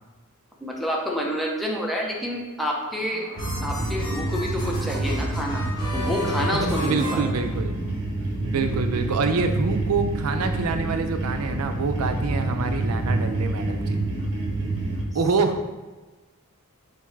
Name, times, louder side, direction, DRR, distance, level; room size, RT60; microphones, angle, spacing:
voice 1, 0.6-3.3 3.6-5.6 5.9-7.3, equal, ahead, -2 dB, 0.6 m, -28 dB
sound 1, 2.8-8.1, left 1 dB, 20° left, 1.1 m, -35 dB
sound 2, 3.4-15.0, right 2 dB, 55° right, 0.9 m, -28 dB
voice 2, 6.5-7.7 8.4-14.0 15.1-15.6, right 4 dB, 75° right, 7 dB, 0.4 m, -26 dB
3.9 x 3.5 x 3.2 m, 1.2 s
head